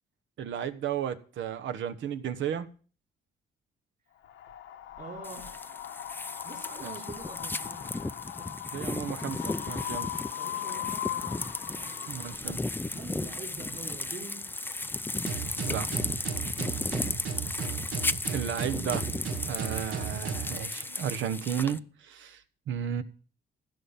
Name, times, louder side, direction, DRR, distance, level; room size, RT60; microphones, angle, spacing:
voice 1, 0.4-2.7 6.8-6.9 8.7-10.1 12.1-12.6 15.6-15.9 18.3-19.1 19.5-23.0, right 8 dB, 75° right, 1.2 m, -33 dB
Wind, 4.2-12.4, left 13 dB, 85° left, 1.3 m, -39 dB
voice 2, 5.0-5.8 6.4-8.0 8.4-8.5 10.4-12.2 12.9-14.5 17.2-17.5, right 4 dB, 40° right, 3.5 m, -46 dB
sound 1, 5.2-21.8, left 2 dB, 10° left, 0.5 m, -35 dB
sound 2, 15.3-20.5, right 6 dB, 90° right, 2.3 m, -35 dB
15.5 x 5.8 x 7.2 m
cardioid pair, 90°, 20 cm